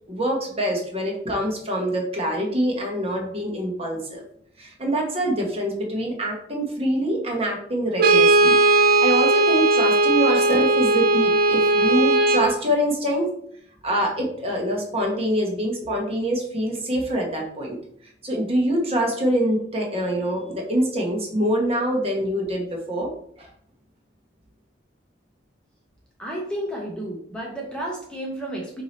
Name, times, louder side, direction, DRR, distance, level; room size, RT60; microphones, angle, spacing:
voice 1, 0.1-4.2 4.6-13.3 13.8-17.8 18.2-23.1 23.4-23.5, equal, 30° right, 0 dB, 1.0 m, -25 dB
Brass instrument, 8.0-12.6, right 2 dB, 50° right, 0.5 m, -18 dB
voice 2, 26.2-28.8, right 1 dB, 5° left, -2 dB, 0.7 m, -32 dB
4.6 x 2.8 x 4.1 m, 0.65 s
head